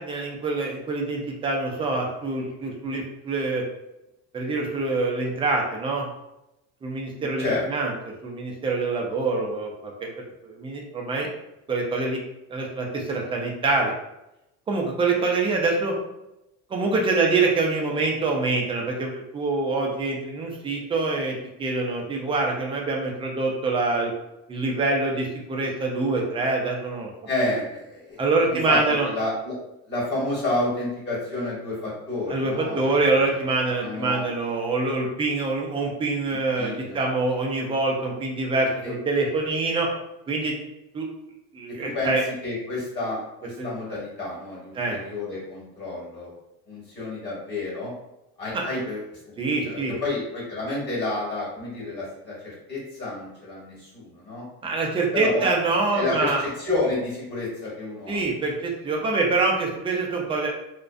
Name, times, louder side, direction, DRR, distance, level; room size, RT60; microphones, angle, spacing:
voice 1, 0.0-3.6 4.3-6.1 6.8-10.1 10.4-11.3 11.7-12.2 12.5-13.9 14.7-16.0 16.7-24.1 24.5-27.1 28.2-29.1 32.3-39.9 40.3-40.6 40.9-41.1 41.5-42.2 43.6-43.7 44.7-45.0 48.5-48.6 49.4-49.9 54.6-56.4 58.1-60.5, right 3 dB, 20° right, 0 dB, 0.3 m, -25 dB
voice 2, 7.1-7.6 27.3-28.8 29.0-29.6 29.9-33.4 33.8-34.3 36.5-37.0 38.8-38.9 41.8-42.2 42.4-46.3 46.7-47.9 48.4-49.2 49.6-54.4 55.1-55.5 55.9-58.2, left 2 dB, 35° left, -6 dB, 1.1 m, -30 dB
2.4 x 2.1 x 2.4 m, 0.90 s
cardioid pair, 145°, 31 cm